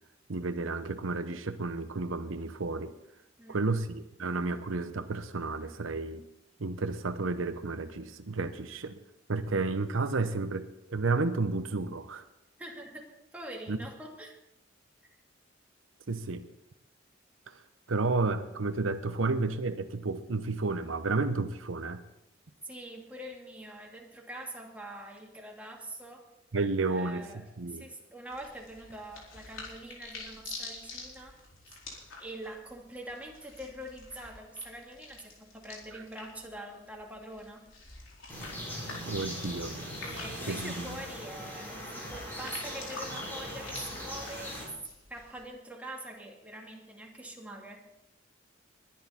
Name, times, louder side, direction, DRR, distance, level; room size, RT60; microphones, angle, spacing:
voice 1, 0.3-2.9 3.5-6.2 6.6-9.0 9.3-12.2 13.7-13.8 16.1-16.5 17.9-22.0 26.5-27.8 39.1-39.9 40.5-41.0, right 3 dB, 80° right, 10 dB, 0.8 m, -31 dB
voice 2, 3.4-3.8 12.6-14.4 22.6-26.2 26.9-31.3 31.7-31.8 32.2-37.6 40.0-44.7 45.1-47.8, right 1 dB, 10° right, -1 dB, 2.6 m, -44 dB
sound 1, 28.3-45.4, left 3 dB, 85° left, 4.6 m, -48 dB
sound 2, 38.3-44.6, equal, 10° left, 5.7 m, -40 dB
21.5 x 10.5 x 4.3 m, 0.85 s
head